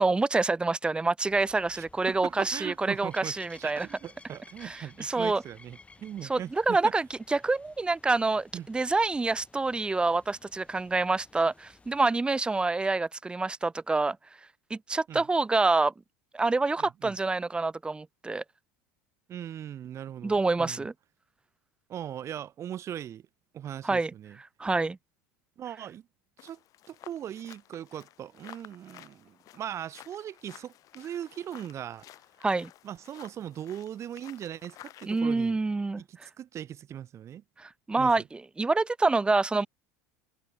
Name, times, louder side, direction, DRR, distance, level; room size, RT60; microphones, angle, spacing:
voice 1, 0.0-3.9 4.6-5.4 6.3-14.2 14.7-15.9 16.3-18.4 20.2-20.9 23.8-24.1 24.6-25.0 32.4-32.7 35.1-36.3 37.6-39.7, right 3 dB, 15° right, 0.8 m, -27 dB
sound 1, 1.3-12.0, left 3 dB, 15° left, 5.2 m, -56 dB
voice 2, 1.7-6.9 8.5-8.7 15.1-15.3 16.8-17.1 19.3-20.9 21.9-23.3 23.5-24.4 25.6-26.1 26.4-26.6 26.9-32.1 32.8-35.6 36.0-37.4 38.0-38.1, right 10 dB, 40° right, 1.8 m, -39 dB
sound 2, 26.4-35.2, left 14 dB, 50° left, 2.8 m, -53 dB
hypercardioid pair, 95°, 7 cm